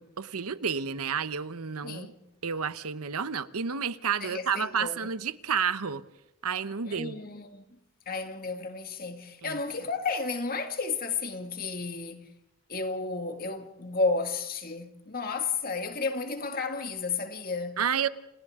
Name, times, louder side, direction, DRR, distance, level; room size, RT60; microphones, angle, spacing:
voice 1, 0.0-2.1 2.4-6.0 6.4-7.2 9.4-9.6 17.8-18.1, right 6 dB, 80° right, 0.9 m, -30 dB
voice 2, 1.8-2.3 4.2-5.1 6.8-7.6 8.1-12.3 12.7-17.8, left 4 dB, 40° left, 2.2 m, -32 dB
29.5 x 29.0 x 3.7 m
head